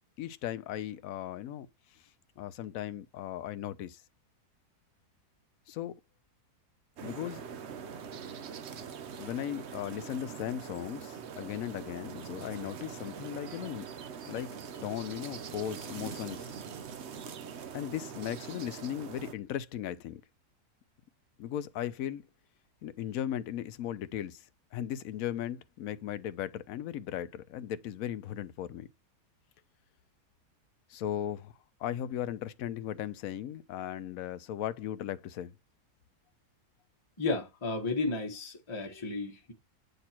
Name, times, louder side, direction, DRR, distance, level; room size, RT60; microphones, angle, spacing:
voice 1, 0.2-1.7 2.4-4.0 5.7-5.9 7.0-7.4 9.2-13.9 14.3-16.5 17.7-20.2 21.4-22.2 22.8-24.5 24.7-28.9 30.9-31.5 31.8-35.5, left 11 dB, 65° left, 1.0 m, -37 dB
sound 1, 7.0-19.3, right 7 dB, 55° right, 0.8 m, -43 dB
voice 2, 37.2-39.5, left 3 dB, 20° left, 1.0 m, -33 dB
8.0 x 2.8 x 4.3 m
omnidirectional pair, 1.7 m